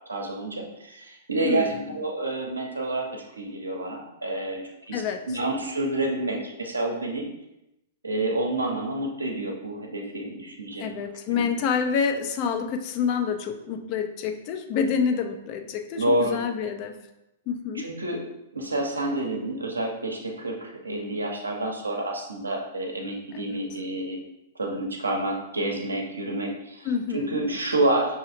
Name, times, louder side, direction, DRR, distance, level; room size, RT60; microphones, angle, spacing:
voice 1, 0.1-4.6 4.9-7.3 8.0-10.9 11.3-11.4 16.0-16.4 17.7-18.2 18.5-24.2 24.5-28.2, right 2 dB, 85° right, 1 dB, 0.7 m, -28 dB
voice 2, 1.4-1.8 4.9-5.2 10.8-17.0 17.5-17.9 23.3-23.6 26.8-27.4, left 6 dB, 40° left, 6 dB, 0.4 m, -28 dB
5.5 x 2.8 x 2.5 m, 0.90 s
figure-of-eight pair, 105°, 0 cm